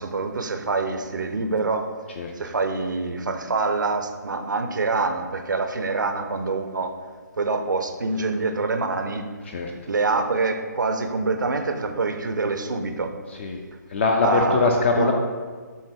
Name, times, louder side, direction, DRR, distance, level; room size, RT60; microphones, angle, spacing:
voice 1, 0.0-1.9 2.4-6.9 7.4-9.3 9.9-13.2 14.2-15.1, right 3 dB, 80° right, 7 dB, 0.5 m, -25 dB
voice 2, 13.9-15.1, left 3 dB, 40° left, 3 dB, 0.4 m, -21 dB
6.1 x 2.1 x 3.5 m, 1.5 s
figure-of-eight pair, 140°, 10 cm